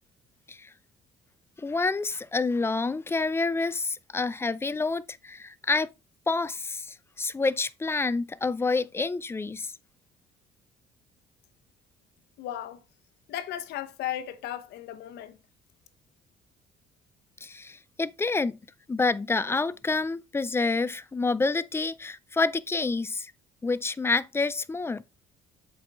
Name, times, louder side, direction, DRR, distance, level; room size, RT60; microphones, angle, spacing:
voice 1, 1.6-5.9 6.3-9.7 17.4-18.6 18.9-23.3 23.6-25.0, left 3 dB, 15° left, 0.4 m, -28 dB
voice 2, 12.4-12.8 13.3-15.4, left 12 dB, 80° left, 1.0 m, -35 dB
7.8 x 4.8 x 3.4 m
cardioid pair, 110°, 17 cm